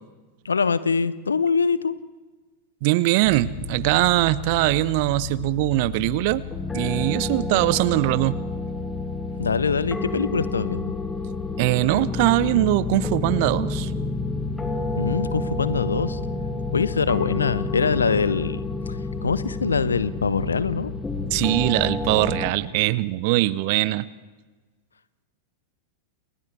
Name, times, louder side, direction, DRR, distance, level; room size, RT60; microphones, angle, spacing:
voice 1, 0.4-1.9 9.4-10.9 14.9-16.2 16.7-20.9, left 5 dB, 75° left, 17 dB, 0.9 m, -24 dB
voice 2, 2.8-6.4 6.7-8.4 11.6-13.9 21.3-24.1, right 18 dB, 45° right, 20 dB, 0.7 m, -21 dB
sound 1, 3.2-22.5, left 3 dB, 10° left, 2.4 m, -30 dB
30.0 x 29.5 x 3.4 m, 1.3 s
figure-of-eight pair, 90°, 0 cm